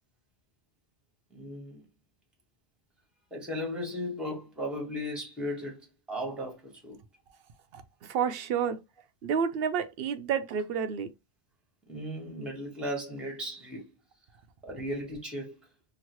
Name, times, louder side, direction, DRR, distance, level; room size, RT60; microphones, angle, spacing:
voice 1, 1.3-1.9 3.3-7.0 11.9-13.9 14.6-15.6, equal, ahead, 1.0 m, -36 dB
voice 2, 7.7-8.8 9.2-11.1, right 7 dB, 65° right, 0.7 m, -30 dB
2.9 x 2.8 x 3.0 m
omnidirectional pair, 1.1 m